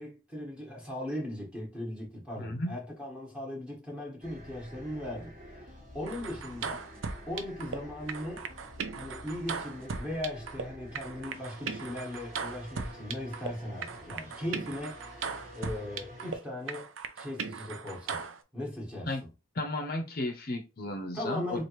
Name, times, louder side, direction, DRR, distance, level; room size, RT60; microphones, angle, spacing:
voice 1, 0.0-5.3 5.7-6.8 7.3-8.4 9.0-15.0 15.5-18.2 18.5-19.3 21.1-21.6, left 1 dB, 5° right, 1.4 m, -38 dB
voice 2, 2.4-2.7 19.1-19.2 19.5-21.6, left 1 dB, 45° left, 0.7 m, -34 dB
sound 1, 4.2-16.4, equal, 40° right, 1.4 m, -49 dB
Ping Pong Song, 6.0-7.8 8.1-10.6 10.9-13.5 13.8-16.4 16.7-18.4, right 5 dB, 75° right, 0.5 m, -38 dB
4.7 x 2.6 x 3.0 m
head